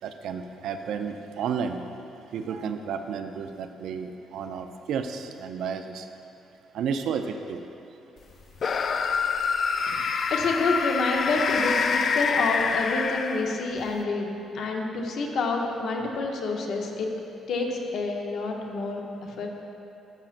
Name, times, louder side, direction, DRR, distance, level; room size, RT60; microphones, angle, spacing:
voice 1, 0.0-1.9 2.3-6.1 6.7-7.6, right 6 dB, 80° right, 7 dB, 0.4 m, -32 dB
sound 1, 8.6-13.8, left 5 dB, 55° left, 0.3 m, -26 dB
voice 2, 9.8-17.1 17.5-19.5, left 3 dB, 70° left, 1 dB, 0.8 m, -28 dB
12.5 x 5.8 x 2.5 m, 2.9 s
cardioid pair, 90°, 0 cm